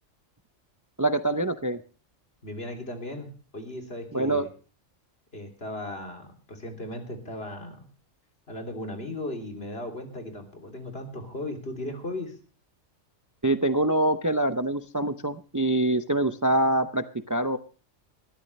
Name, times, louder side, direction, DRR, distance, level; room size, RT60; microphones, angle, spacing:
voice 1, 1.0-1.8 4.1-4.5 13.4-17.6, right 1 dB, 20° right, 9 dB, 0.6 m, -25 dB
voice 2, 2.4-4.5 5.3-7.9 8.5-12.4, left 1 dB, 55° left, 3 dB, 3.3 m, -37 dB
20.5 x 13.5 x 3.2 m, 0.38 s
omnidirectional pair, 1.3 m